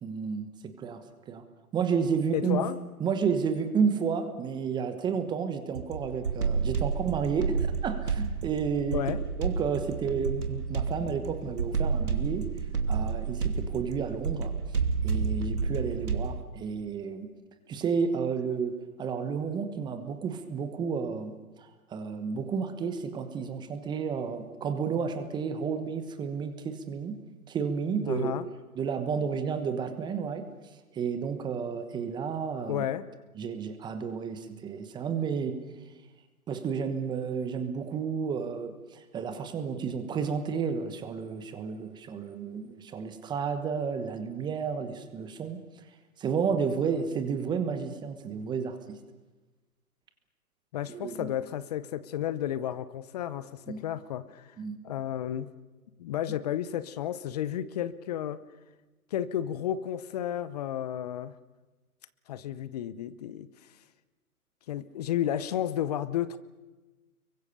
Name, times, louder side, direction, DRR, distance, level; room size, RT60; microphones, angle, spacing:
voice 1, 0.0-1.4 1.7-2.6 3.0-9.0 9.4-12.5 12.9-14.5 15.0-17.3 17.7-27.2 27.5-28.3 28.8-30.4 30.9-32.8 33.4-35.6 36.5-45.6 46.2-49.0 50.9-51.3 53.7-53.8 54.6-54.7, right 6 dB, 10° right, 9 dB, 1.2 m, -31 dB
voice 2, 2.3-2.8 8.9-9.2 18.5-18.6 28.1-28.5 32.7-33.1 50.7-54.6 54.8-55.5 56.0-58.4 59.1-61.3 62.3-63.5 64.7-66.4, left 11 dB, 25° left, 17 dB, 0.8 m, -32 dB
sound 1, 5.7-16.4, right 5 dB, 80° right, 3.0 m, -30 dB
30.0 x 23.0 x 6.9 m, 1.2 s
hypercardioid pair, 140°, 45 cm